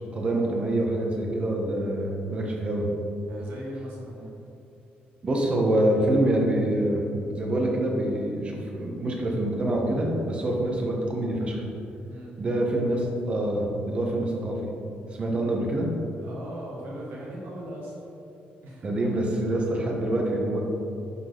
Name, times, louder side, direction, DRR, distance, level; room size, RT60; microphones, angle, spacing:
voice 1, 0.1-2.9 5.2-7.0 7.3-11.6 12.4-14.6 15.2-15.9 18.8-20.6, right 1 dB, 30° right, -1 dB, 1.2 m, -26 dB
voice 2, 3.3-4.3 12.1-12.3 16.2-17.9 18.6-19.1, right 1 dB, 80° right, -4 dB, 1.7 m, -39 dB
11.0 x 3.9 x 3.9 m, 2.7 s
cardioid pair, 155°, 4 cm